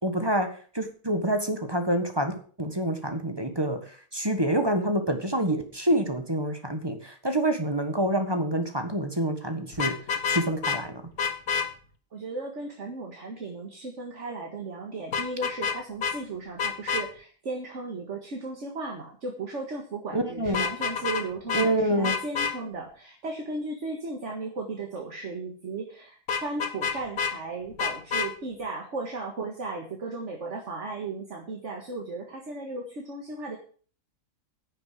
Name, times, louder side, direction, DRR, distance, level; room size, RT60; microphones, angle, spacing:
voice 1, 0.0-0.5 0.7-9.9 10.3-11.0 20.1-20.7 21.5-22.2, right 1 dB, 15° right, 6 dB, 1.5 m, -27 dB
Vehicle horn car horn honking, 9.7-10.8 11.2-11.7 15.1-15.8 16.0-16.1 16.6-17.0 20.5-21.2 21.5-21.7 22.0-22.5 26.3-27.3 27.8-28.3, left 6 dB, 75° left, 1.9 m, -27 dB
voice 2, 12.1-33.6, right 3 dB, 55° right, 2 dB, 2.0 m, -36 dB
10.5 x 7.1 x 7.8 m, 0.44 s
omnidirectional pair, 1.5 m